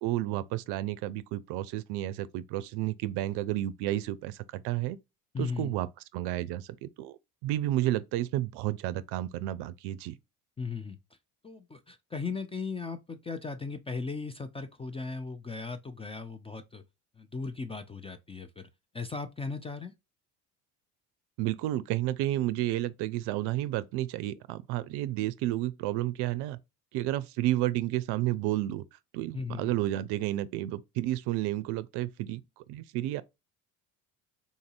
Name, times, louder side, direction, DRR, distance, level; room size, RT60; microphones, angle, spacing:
voice 1, 0.0-5.0 5.4-5.9 6.1-10.1 21.4-26.6 26.9-28.8 29.1-33.2, right 15 dB, 65° right, 0.5 m, -31 dB
voice 2, 5.3-5.7 10.6-11.0 11.4-16.8 17.2-18.7 18.9-19.9 29.3-29.7, left 4 dB, 15° left, 0.3 m, -37 dB
3.9 x 2.6 x 2.5 m
hypercardioid pair, 65°, 44 cm